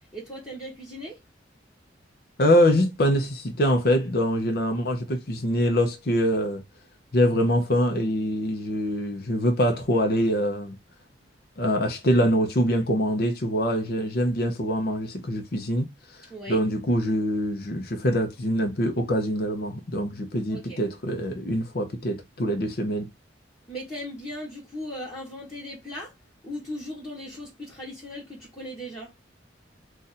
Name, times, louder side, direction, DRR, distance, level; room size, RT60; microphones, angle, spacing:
voice 1, 0.1-1.2 16.3-16.6 20.5-20.8 23.7-26.1 26.4-29.1, equal, 15° left, 1.1 m, -38 dB
voice 2, 2.4-6.6 7.1-10.8 11.6-15.9 16.2-23.1, equal, 55° left, 0.7 m, -24 dB
2.6 x 2.5 x 4.1 m
head